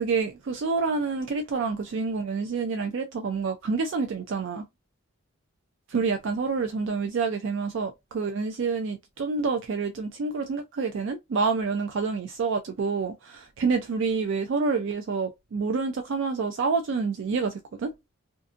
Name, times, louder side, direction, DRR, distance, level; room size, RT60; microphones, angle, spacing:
voice 1, 0.0-4.7 5.9-17.9, right 4 dB, 55° right, 0.3 m, -28 dB
2.5 x 2.4 x 2.4 m
head